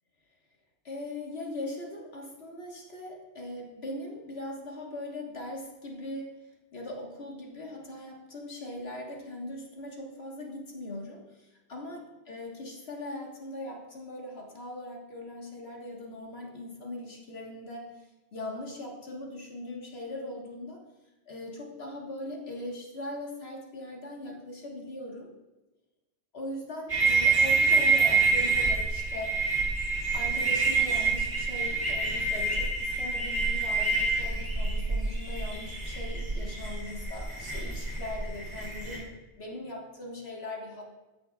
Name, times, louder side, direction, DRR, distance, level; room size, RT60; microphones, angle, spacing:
voice 1, 0.8-12.0 12.3-17.9 18.3-20.8 21.2-25.3 26.3-29.4 30.1-40.8, left 1 dB, 70° left, -1 dB, 1.7 m, -40 dB
sound 1, 26.9-39.0, right 4 dB, 25° right, 2.5 m, -27 dB
15.5 x 5.4 x 2.3 m, 1.1 s
omnidirectional pair, 1.1 m